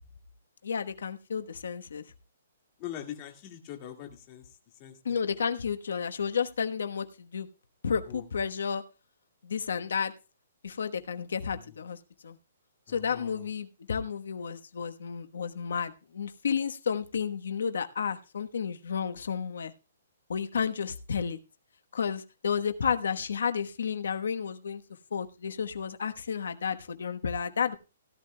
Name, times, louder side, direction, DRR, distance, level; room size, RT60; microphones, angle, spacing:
voice 1, 0.6-2.0 5.0-7.5 7.8-8.8 9.4-10.1 10.6-12.0 12.2-12.4 12.9-19.7 20.3-21.4 21.9-24.8 25.1-27.8, left 6 dB, 85° left, 8 dB, 1.1 m, -31 dB
voice 2, 2.8-4.5 4.8-5.2 8.1-8.2 12.9-13.5, left 10 dB, 25° left, 3 dB, 1.9 m, -42 dB
17.5 x 11.5 x 2.2 m, 0.30 s
hypercardioid pair, 170°, 0 cm